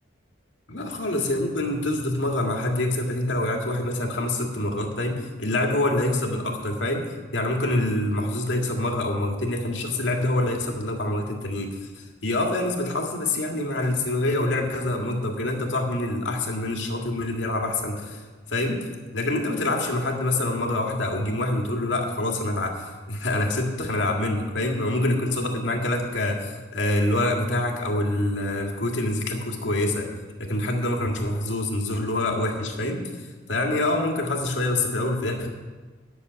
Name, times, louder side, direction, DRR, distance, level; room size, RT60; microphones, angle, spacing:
voice 1, 0.7-18.2 18.5-18.8 19.1-30.1 30.4-35.5, left 1 dB, 80° left, 1 dB, 1.9 m, -26 dB
11.0 x 6.5 x 8.1 m, 1.4 s
head